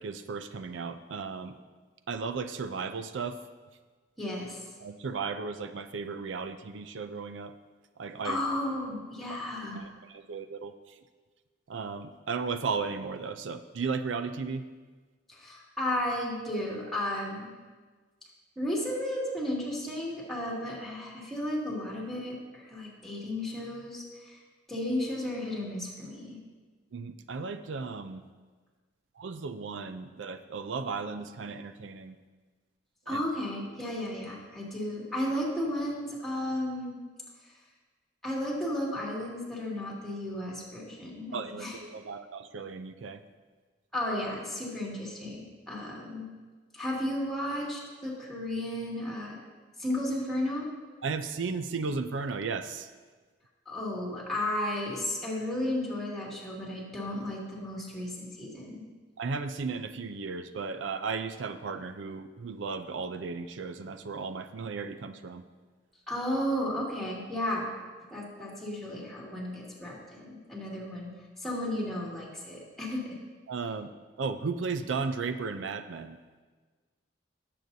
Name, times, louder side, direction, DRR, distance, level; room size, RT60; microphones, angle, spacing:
voice 1, 0.0-1.6 2.1-3.4 4.8-7.5 8.0-8.4 9.8-11.0 11.7-14.6 26.9-28.2 29.2-32.2 33.1-33.2 41.3-43.2 51.0-52.9 59.2-65.4 73.5-73.9 74.2-76.2, right 4 dB, 85° right, 10 dB, 0.5 m, -35 dB
voice 2, 4.2-4.6 8.2-9.8 15.3-17.5 18.6-24.4 24.7-26.4 33.1-36.9 38.2-41.8 43.9-46.3 46.7-49.4 49.8-50.7 53.7-58.8 66.1-67.7 68.1-71.1 71.4-73.2, left 1 dB, ahead, -4 dB, 2.2 m, -33 dB
17.5 x 7.7 x 2.7 m, 1.4 s
head